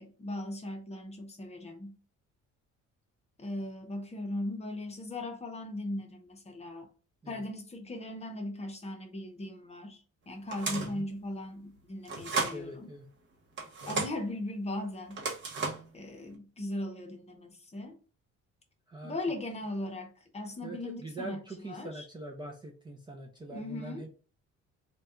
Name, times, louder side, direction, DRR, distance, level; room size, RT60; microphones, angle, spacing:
voice 1, 0.0-2.0 3.4-6.9 7.3-10.0 10.3-12.9 13.9-15.7 15.9-18.0 19.0-21.4 21.7-22.1 23.5-24.1, left 1 dB, 20° left, 0.8 m, -38 dB
sound 1, 10.5-11.0 12.1-12.6 13.6-14.2 15.1-15.9, right 4 dB, 40° right, 0.9 m, -33 dB
voice 2, 12.5-13.1 18.9-19.2 20.6-24.1, right 2 dB, 15° right, 0.4 m, -43 dB
4.0 x 2.3 x 3.6 m
cardioid pair, 150°, 30 cm